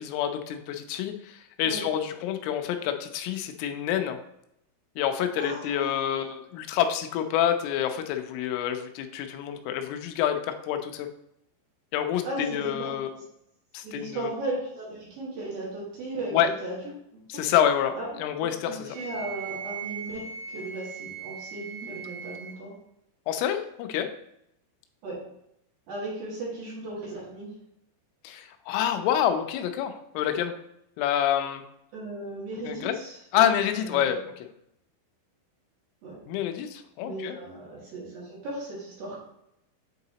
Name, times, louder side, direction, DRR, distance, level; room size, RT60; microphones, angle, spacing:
voice 1, 0.0-4.2 5.0-11.1 11.9-13.2 13.7-14.3 16.3-16.5 17.3-19.0 23.3-24.1 28.2-30.5 31.0-31.6 32.6-33.0 33.3-34.2 36.3-37.4, left 10 dB, 90° left, 7 dB, 3.2 m, -27 dB
voice 2, 5.4-6.3 12.2-13.2 13.8-16.8 17.1-17.5 18.0-18.1 18.4-22.7 25.0-25.2 25.9-27.6 31.9-34.0 36.0-36.2 37.0-39.2, right 2 dB, 55° right, -6 dB, 3.1 m, -36 dB
Wind instrument woodwind instrument, 18.9-22.6, right 6 dB, 80° right, 3.9 m, -39 dB
8.6 x 4.0 x 2.8 m, 0.79 s
omnidirectional pair, 5.6 m